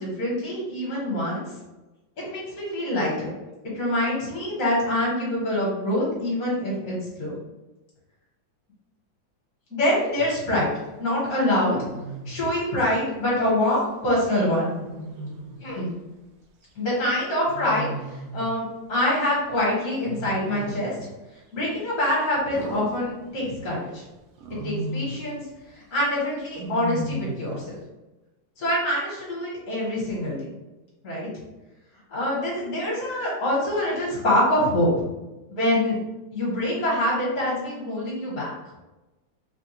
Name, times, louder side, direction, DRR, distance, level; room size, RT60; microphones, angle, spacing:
voice 1, 0.0-1.4 2.2-3.3 3.7-7.3 9.7-10.7 11.0-11.8 12.3-14.7 15.6-15.9 16.7-17.9 18.3-21.1 21.5-24.0 24.6-25.4 25.9-27.8 28.6-30.4 31.0-31.3 32.1-35.1 35.6-36.0 36.3-38.5, left 1 dB, 55° left, -6 dB, 1.4 m, -25 dB
Wild animals, 10.2-10.5 11.7-12.5 14.8-15.7 17.5-18.6 20.0-21.0 22.5-23.7 24.4-25.3 26.6-27.6, right 1 dB, 75° right, 0.8 m, -35 dB
3.4 x 2.2 x 2.8 m, 1.1 s
omnidirectional pair, 2.1 m